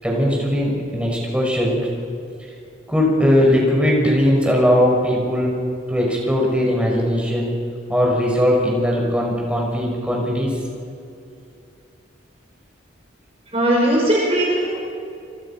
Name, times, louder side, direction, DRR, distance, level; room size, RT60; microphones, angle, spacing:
voice 1, 0.0-1.9 2.9-5.6 5.9-7.5 7.9-10.6, equal, 5° right, -2 dB, 6.1 m, -19 dB
voice 2, 13.5-14.8, right 1 dB, 30° right, -2 dB, 4.6 m, -18 dB
30.0 x 24.0 x 5.9 m, 2.5 s
head